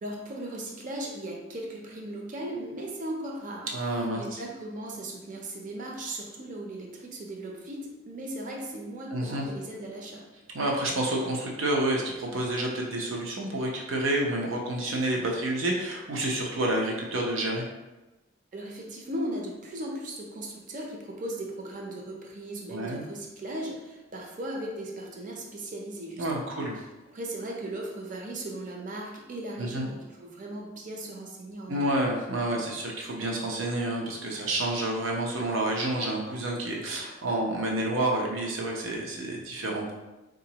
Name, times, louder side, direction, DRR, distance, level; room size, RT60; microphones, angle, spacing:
voice 1, 0.0-3.7 4.1-10.2 18.5-26.5 27.1-31.9, right 1 dB, 40° right, -1 dB, 0.6 m, -37 dB
voice 2, 3.7-4.4 9.1-9.4 10.5-17.6 22.7-23.0 26.2-26.8 29.6-29.9 31.7-39.9, right 1 dB, 85° right, -1 dB, 0.7 m, -29 dB
4.0 x 2.5 x 2.9 m, 1.1 s
head